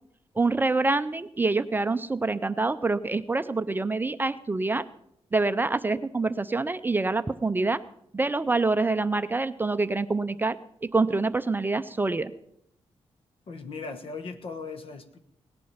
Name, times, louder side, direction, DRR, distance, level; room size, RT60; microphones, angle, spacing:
voice 1, 0.4-4.8 5.3-7.8 8.1-12.3, right 3 dB, 20° right, 11 dB, 0.5 m, -26 dB
voice 2, 13.5-15.2, left 4 dB, 55° left, 9 dB, 1.3 m, -38 dB
18.0 x 10.5 x 5.7 m, 0.74 s
wide cardioid pair, 130°, 11 cm